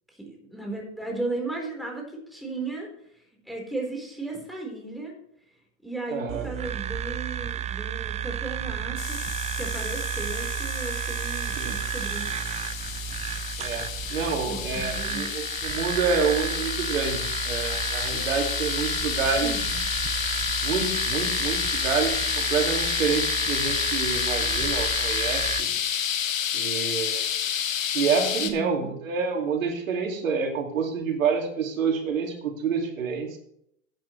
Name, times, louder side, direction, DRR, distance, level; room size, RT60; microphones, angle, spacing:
voice 1, 0.1-5.1 5.8-9.2 9.6-12.3 14.5-15.3 19.4-19.9 28.4-28.9, right 2 dB, ahead, 0 dB, 4.2 m, -35 dB
voice 2, 6.1-6.5 11.6-11.8 13.6-19.5 20.6-25.7 26.5-27.3 27.9-33.4, right 5 dB, 85° right, 2 dB, 2.5 m, -28 dB
sound 1, 6.3-25.6, right 9 dB, 20° right, 0.5 m, -32 dB
sound 2, 9.0-28.5, left 9 dB, 90° left, 1.6 m, -30 dB
14.5 x 9.0 x 3.2 m, 0.70 s
hypercardioid pair, 105°, 39 cm